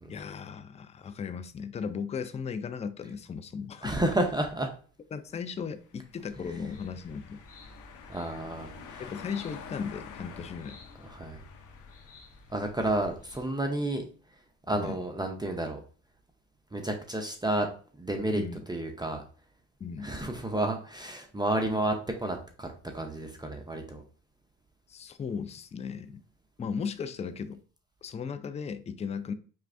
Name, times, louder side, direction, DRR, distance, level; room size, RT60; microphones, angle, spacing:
voice 1, 0.1-4.0 5.1-7.4 9.1-10.8 14.8-15.0 18.4-18.6 19.8-20.1 24.9-26.2 26.6-27.6 28.0-29.3, left 6 dB, 20° left, 0.4 m, -36 dB
voice 2, 3.8-4.7 8.1-9.1 11.0-11.4 12.5-14.1 14.7-15.8 16.7-17.7 18.0-18.4 18.7-19.2 20.0-22.7 22.9-24.0, right 1 dB, 15° right, 0.6 m, -31 dB
sound 1, 5.9-12.7, left 6 dB, 85° left, 0.7 m, -48 dB
sound 2, 6.3-13.5, left 3 dB, 50° left, 1.1 m, -53 dB
4.6 x 3.3 x 2.5 m
cardioid pair, 90°, 30 cm